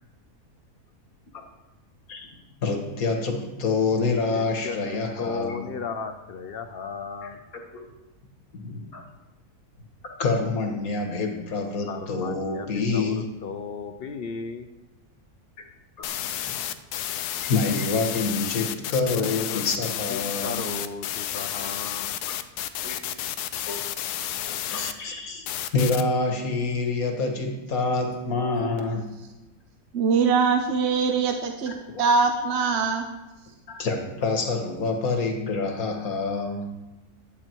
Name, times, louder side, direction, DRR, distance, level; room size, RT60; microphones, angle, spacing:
voice 1, 2.6-5.6 7.2-7.3 7.7-7.8 8.5-9.0 10.0-13.3 16.0-16.1 17.4-20.7 22.8-23.0 23.7-23.8 24.5-25.5 25.7-29.1 31.7-32.0 33.7-36.7, left 3 dB, 70° left, 3 dB, 1.9 m, -27 dB
voice 2, 4.3-7.4 11.8-14.7 19.1-22.2, left 5 dB, 50° left, 8 dB, 0.8 m, -36 dB
sound 1, 16.0-24.9 25.5-26.0, left 11 dB, 90° left, 1.2 m, -31 dB
voice 3, 29.9-33.1, right 5 dB, 50° right, 4 dB, 1.0 m, -22 dB
11.0 x 8.5 x 4.6 m, 1.0 s
omnidirectional pair, 1.6 m